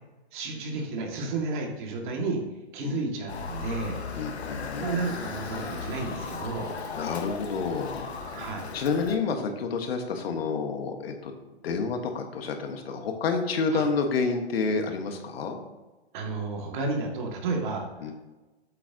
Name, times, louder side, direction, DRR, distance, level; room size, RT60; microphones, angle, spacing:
voice 1, 0.3-2.4 2.7-4.0 4.8-6.7 8.3-8.7 13.7-13.8 16.1-18.1, right 3 dB, 50° right, 1 dB, 2.1 m, -32 dB
Motor vehicle (road) / Siren, 3.3-9.2, left 4 dB, 85° left, 1.4 m, -36 dB
voice 2, 4.1-4.9 6.9-8.1 8.7-11.3 11.6-15.6 18.0-18.1, left 4 dB, 65° left, 5 dB, 1.5 m, -29 dB
8.4 x 8.1 x 2.9 m, 1.1 s
hypercardioid pair, 140°, 32 cm